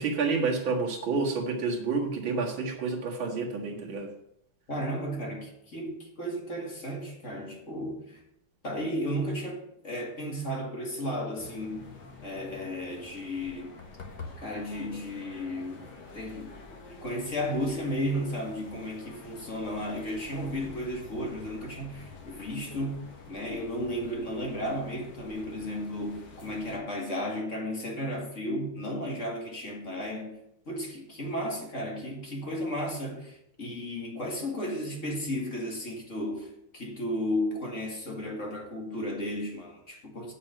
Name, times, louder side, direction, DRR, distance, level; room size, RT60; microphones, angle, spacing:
voice 1, 0.0-4.1, right 4 dB, 70° right, 2.5 m, -29 dB
voice 2, 4.7-8.2 8.6-11.9 12.2-13.8 14.4-15.8 16.1-16.6 17.0-30.4 30.7-40.3, equal, 35° left, 2.3 m, -34 dB
sound 1, 11.4-26.8, left 4 dB, 55° left, 2.1 m, -47 dB
10.0 x 5.4 x 7.8 m
omnidirectional pair, 2.3 m